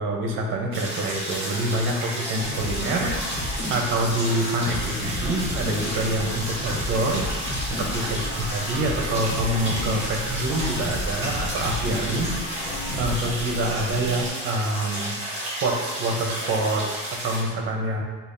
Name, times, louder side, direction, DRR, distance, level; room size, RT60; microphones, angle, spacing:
voice 1, 0.0-3.1 3.7-7.2 7.6-8.2 8.5-12.3 13.0-18.0, right 1 dB, 40° right, 1 dB, 0.7 m, -26 dB
sound 1, 0.7-17.4, right 1 dB, 20° right, 1.5 m, -32 dB
sound 2, 2.4-13.3, left 1 dB, 55° left, 1.2 m, -32 dB
sound 3, 5.0-14.3, left 1 dB, 40° left, 1.3 m, -39 dB
6.7 x 2.4 x 2.6 m, 1.4 s
cardioid pair, 165°, 31 cm